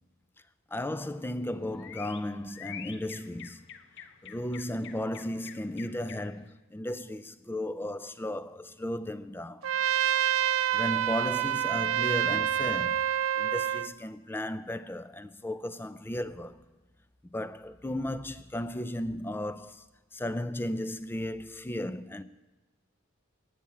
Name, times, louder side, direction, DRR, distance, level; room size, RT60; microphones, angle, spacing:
voice 1, 0.7-3.6 4.2-9.6 10.7-13.0 13.4-16.6 17.3-19.8 20.1-22.2, left 1 dB, 10° left, 0.4 m, -35 dB
sound 1, 0.9-6.5, left 8 dB, 55° left, 0.7 m, -48 dB
Trumpet, 9.6-13.9, right 10 dB, 65° right, 0.4 m, -27 dB
14.5 x 8.7 x 8.3 m
head